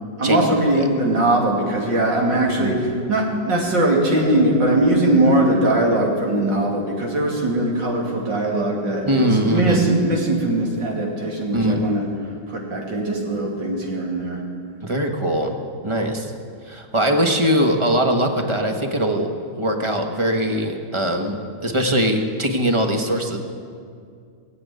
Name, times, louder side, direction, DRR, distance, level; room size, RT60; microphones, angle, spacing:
voice 1, 0.2-12.0 12.5-14.4, right 1 dB, 70° right, -1 dB, 3.2 m, -20 dB
voice 2, 9.1-9.8 11.5-11.8 14.8-15.6 15.8-16.3 16.7-19.3 19.6-23.4, equal, 20° right, 4 dB, 1.1 m, -21 dB
19.5 x 8.0 x 9.3 m, 2.3 s
omnidirectional pair, 2.1 m